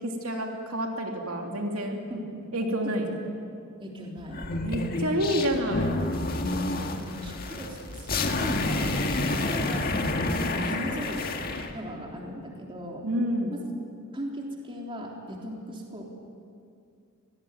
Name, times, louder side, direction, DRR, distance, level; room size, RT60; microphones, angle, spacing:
voice 1, 0.0-2.0 2.5-3.1 4.6-5.9 10.6-11.0 13.0-13.5, equal, 80° right, 2 dB, 3.0 m, -29 dB
voice 2, 2.8-3.1 3.8-4.5 6.6-9.9 10.5-11.3 11.7-13.1 13.5-13.6 14.1-16.0, equal, 25° right, -1 dB, 3.6 m, -38 dB
sound 1, 4.3-11.7, left 2 dB, 45° left, 1.9 m, -29 dB
26.0 x 19.5 x 9.3 m, 2.4 s
head